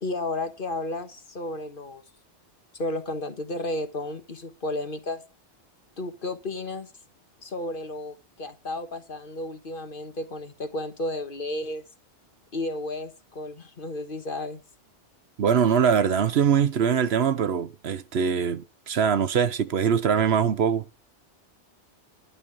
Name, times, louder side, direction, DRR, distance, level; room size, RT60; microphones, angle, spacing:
voice 1, 0.0-2.0 2.7-5.2 6.0-6.9 7.4-11.8 12.5-14.6, left 2 dB, 50° left, 1.6 m, -33 dB
voice 2, 15.4-20.8, right 7 dB, 65° right, 1.0 m, -22 dB
11.5 x 5.6 x 8.8 m
omnidirectional pair, 1.2 m